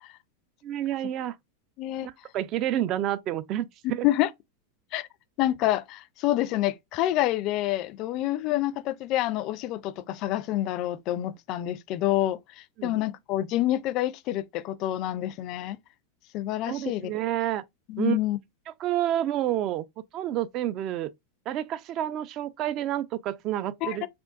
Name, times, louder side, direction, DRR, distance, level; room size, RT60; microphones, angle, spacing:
voice 1, 0.6-1.4 2.0-4.1 12.8-13.0 16.7-17.6 18.0-18.2 18.8-19.8 20.1-21.1 21.5-24.1, right 12 dB, 45° right, 0.4 m, -29 dB
voice 2, 1.8-2.1 4.0-4.3 4.9-5.1 5.4-12.4 12.8-15.8 16.3-17.1 17.9-18.4 23.8-24.1, left 14 dB, 50° left, 0.4 m, -27 dB
3.6 x 2.3 x 2.4 m
hypercardioid pair, 105°, 0 cm